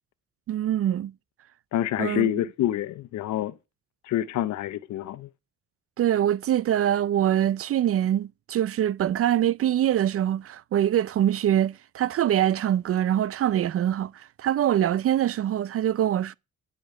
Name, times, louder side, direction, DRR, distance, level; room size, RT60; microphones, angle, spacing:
voice 1, 0.5-1.1 2.0-2.3 6.0-16.3, right 11 dB, 50° right, 0.4 m, -24 dB
voice 2, 1.7-3.5 4.0-5.3, left 12 dB, 65° left, 0.6 m, -27 dB
10.0 x 5.1 x 6.3 m
cardioid pair, 90°, 30 cm